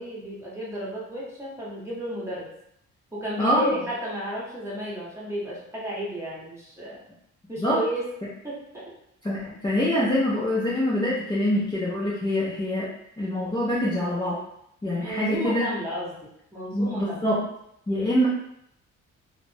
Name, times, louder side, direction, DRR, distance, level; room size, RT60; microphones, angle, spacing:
voice 1, 0.0-2.5 3.1-7.0 7.5-8.0 8.4-8.5 15.0-16.1 16.5-17.2, equal, 10° right, -7 dB, 1.1 m, -32 dB
voice 2, 3.4-3.7 7.6-7.8 9.2-12.9 13.2-14.4 14.8-15.7 16.7-17.5 17.9-18.3, left 1 dB, 15° left, -9 dB, 0.7 m, -25 dB
2.4 x 2.1 x 3.3 m, 0.76 s
cardioid pair, 90°, 30 cm